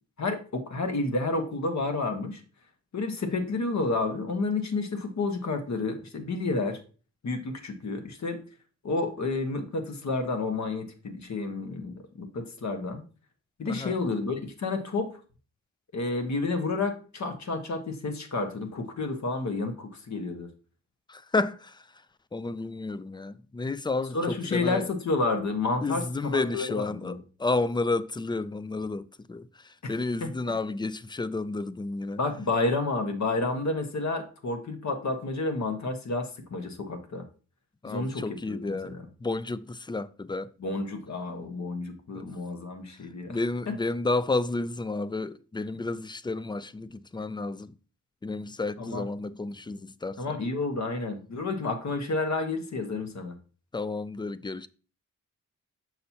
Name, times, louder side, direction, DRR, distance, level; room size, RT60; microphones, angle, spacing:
voice 1, 0.2-2.4 2.9-6.8 7.2-8.4 8.8-13.0 13.6-15.2 15.9-20.5 24.1-27.2 29.8-30.5 32.2-37.2 37.8-39.1 40.6-43.4 43.7-43.8 48.8-49.1 50.2-53.3, left 3 dB, 60° left, 1.3 m, -30 dB
voice 2, 21.1-21.7 22.3-24.8 25.8-27.1 27.4-29.5 29.9-32.2 37.8-38.9 39.2-40.5 42.1-42.3 43.3-47.7 48.2-50.4 53.7-54.7, left 3 dB, 15° left, 0.3 m, -31 dB
6.4 x 5.9 x 2.8 m
cardioid pair, 65°, 32 cm